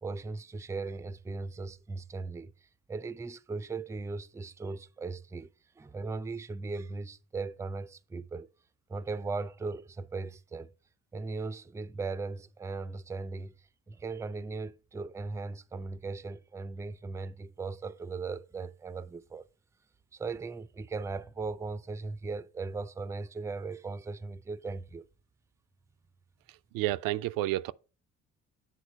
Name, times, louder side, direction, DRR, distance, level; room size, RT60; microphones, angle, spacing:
voice 1, 0.0-2.5 2.9-5.5 5.8-8.5 8.9-10.7 11.1-13.5 13.9-19.5 20.1-25.1, right 3 dB, 10° right, 0.4 m, -38 dB
voice 2, 26.5-27.7, right 16 dB, 65° right, 0.5 m, -31 dB
8.4 x 3.9 x 5.4 m
hypercardioid pair, 50°, 37 cm